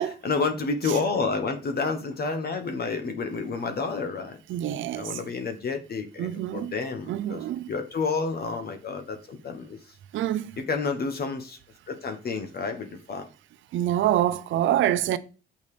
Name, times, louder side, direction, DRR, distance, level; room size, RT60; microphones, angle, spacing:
voice 1, 0.2-4.4 4.9-9.8 10.7-11.6 11.9-13.3, left 4 dB, 50° left, 1.3 m, -30 dB
voice 2, 4.5-5.1 6.2-6.7 7.1-7.7 10.1-10.6 13.7-15.2, right 12 dB, 75° right, 0.7 m, -26 dB
7.1 x 5.3 x 5.0 m
cardioid pair, 90°, 20 cm